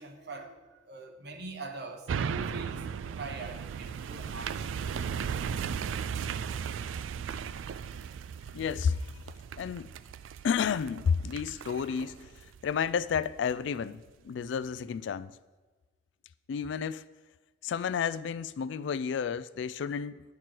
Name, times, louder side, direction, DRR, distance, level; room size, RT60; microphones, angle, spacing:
voice 1, 0.0-4.7, right 3 dB, 60° right, 1.1 m, -43 dB
sound 1, 2.1-13.5 14.0-14.1, right 7 dB, 85° right, 0.3 m, -37 dB
voice 2, 8.5-9.1 9.6-9.9 10.4-12.3 12.6-15.4 16.5-17.1 17.6-20.2, left 6 dB, 70° left, 0.3 m, -31 dB
9.5 x 4.6 x 6.0 m
head